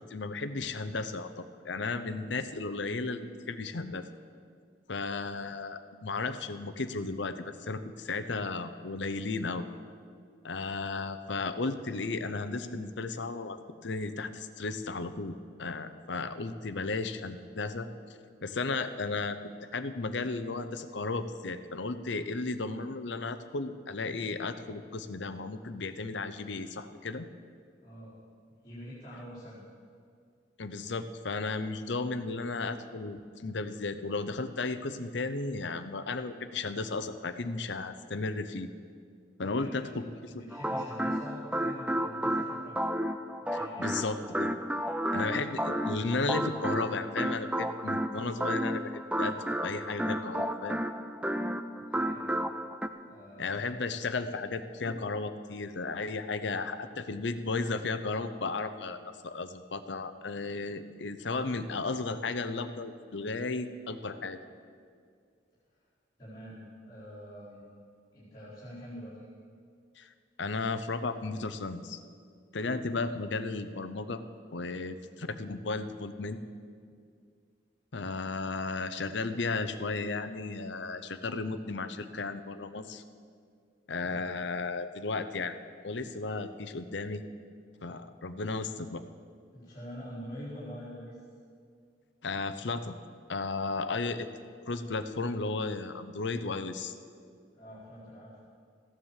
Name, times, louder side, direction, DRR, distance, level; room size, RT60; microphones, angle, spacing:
voice 1, 0.1-4.0 4.9-9.7 10.4-17.9 18.4-19.4 19.7-27.3 30.6-38.7 39.4-40.4 43.5-44.5 45.1-48.8 49.2-49.4 49.6-50.8 53.4-64.4 70.0-70.1 70.4-72.0 72.5-74.2 74.5-76.4 77.9-83.0 83.9-85.6 85.8-87.2 87.8-89.0 92.2-92.9 93.3-94.3 94.7-96.9, left 3 dB, 70° left, 10 dB, 0.8 m, -34 dB
voice 2, 27.8-28.1 28.6-29.6 39.4-39.9 40.3-42.8 43.4-43.9 51.8-52.5 53.1-53.7 65.7-65.8 66.2-67.7 68.1-69.3 76.9-77.0 84.0-84.2 89.5-91.2 97.5-98.4, equal, 25° left, -13 dB, 4.7 m, -45 dB
sound 1, 40.5-52.9, equal, 5° right, 0.5 m, -32 dB
15.0 x 9.8 x 7.4 m, 2.2 s
head